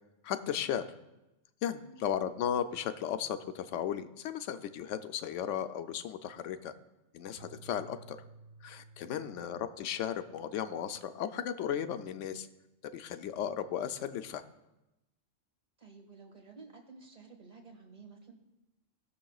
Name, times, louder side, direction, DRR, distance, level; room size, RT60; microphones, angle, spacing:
voice 1, 0.2-0.9 1.6-6.7 7.1-8.2 8.6-12.5 12.9-14.4, left 9 dB, 75° left, 10 dB, 0.9 m, -35 dB
sound 1, 7.4-9.9, right 4 dB, 60° right, 1.2 m, -54 dB
voice 2, 9.1-9.4 15.8-18.3, right 4 dB, 30° right, 2 dB, 1.5 m, -53 dB
19.5 x 6.7 x 2.4 m, 0.96 s
omnidirectional pair, 1.3 m